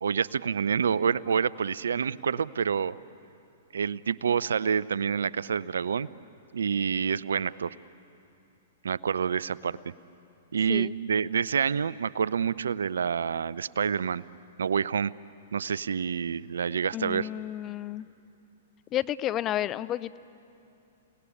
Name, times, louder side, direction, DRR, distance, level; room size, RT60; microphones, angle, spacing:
voice 1, 0.0-2.9 3.7-6.1 6.5-7.8 8.8-9.8 10.5-14.2 14.6-15.1 15.5-17.3, right 6 dB, 75° right, 20 dB, 0.5 m, -27 dB
voice 2, 16.9-18.1 18.9-20.2, left 12 dB, 30° left, 16 dB, 0.6 m, -31 dB
30.0 x 18.5 x 10.0 m, 2.7 s
hypercardioid pair, 115°, 0 cm